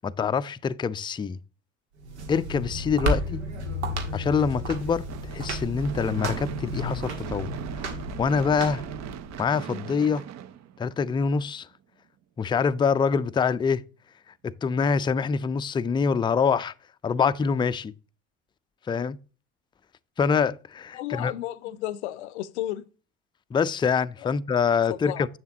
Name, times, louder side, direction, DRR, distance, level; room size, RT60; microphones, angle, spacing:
voice 1, 0.0-1.4 2.3-3.4 4.1-5.0 5.3-7.5 8.2-8.8 9.4-10.2 10.8-11.7 12.4-13.8 14.4-16.7 17.0-17.9 18.9-19.2 20.2-21.3 23.5-25.3, left 6 dB, 15° left, 0.4 m, -25 dB
sound 1, 2.0-9.4, equal, 90° right, 1.7 m, -32 dB
Gunshot gunfire / Fireworks, 5.1-11.3, right 10 dB, 55° right, 0.8 m, -40 dB
voice 2, 20.9-22.8 24.2-24.3 24.9-25.3, left 14 dB, 85° left, 0.6 m, -33 dB
8.1 x 7.0 x 2.8 m
hypercardioid pair, 70°, 33 cm